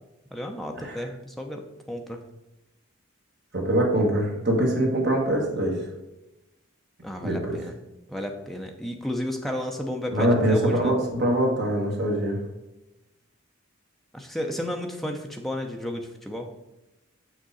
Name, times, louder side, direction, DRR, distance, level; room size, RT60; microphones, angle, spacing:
voice 1, 0.3-2.2 7.0-7.7 8.1-10.9 14.1-16.5, left 1 dB, ahead, 2 dB, 0.6 m, -33 dB
voice 2, 3.5-5.8 7.2-7.6 10.1-12.4, right 1 dB, 50° right, 0 dB, 1.5 m, -23 dB
6.7 x 6.3 x 4.1 m, 0.97 s
head